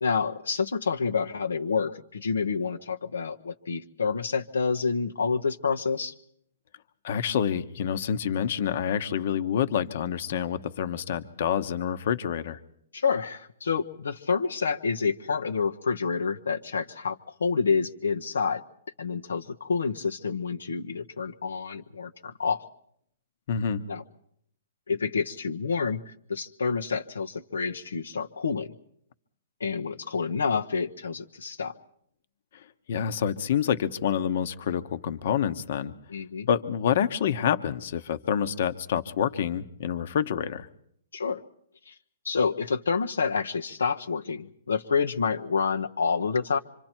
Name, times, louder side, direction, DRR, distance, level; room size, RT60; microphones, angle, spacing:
voice 1, 0.0-6.1 12.9-18.6 19.0-22.6 23.9-24.0 24.9-28.7 29.6-31.7 36.1-36.5 41.1-41.4 41.9-42.0 42.2-46.6, left 5 dB, 85° left, 5 dB, 1.0 m, -28 dB
voice 2, 7.0-12.6 23.5-23.8 32.9-35.9 36.5-40.7, left 8 dB, 60° left, 10 dB, 1.2 m, -27 dB
26.0 x 25.5 x 4.5 m, 0.70 s
hypercardioid pair, 135°, 0 cm